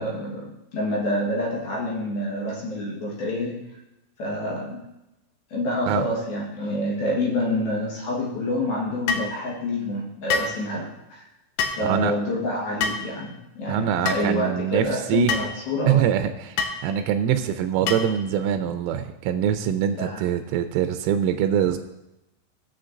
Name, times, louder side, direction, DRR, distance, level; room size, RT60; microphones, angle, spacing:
voice 1, 0.0-3.6 4.2-4.8 5.5-11.3 11.7-16.1 20.0-20.2, left 1 dB, 65° left, -3 dB, 2.7 m, -27 dB
sound 1, 9.1-9.3 10.3-10.6 11.6-11.8 12.8-13.1 14.1-14.2 15.3-15.5 16.6-16.8 17.9-18.2, left 5 dB, 80° left, 2.5 m, -25 dB
voice 2, 11.8-12.1 13.7-15.3 15.9-21.8, right 9 dB, 90° right, 7 dB, 3.1 m, -24 dB
17.5 x 7.6 x 2.5 m, 0.93 s
omnidirectional pair, 5.6 m